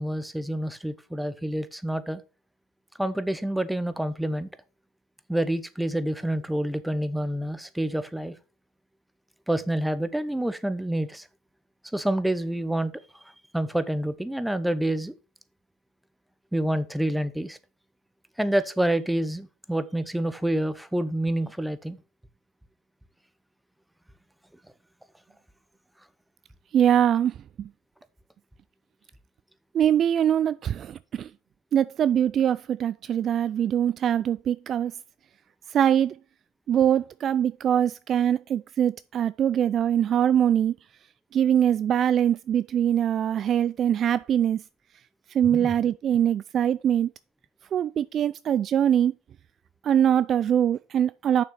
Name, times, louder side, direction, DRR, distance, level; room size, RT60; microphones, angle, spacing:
voice 1, 0.0-2.2 3.0-4.5 5.3-8.4 9.5-11.3 11.9-12.9 13.2-15.1 16.5-17.6 18.4-22.0 45.5-45.7, right 1 dB, 5° right, 0.8 m, -28 dB
voice 2, 26.7-27.7 29.7-31.3 31.7-34.9 35.7-36.2 36.7-40.7 41.3-44.6 45.3-47.1 47.7-49.1 49.8-51.4, right 9 dB, 40° right, 0.3 m, -23 dB
6.8 x 5.9 x 5.6 m
hypercardioid pair, 85°, 0 cm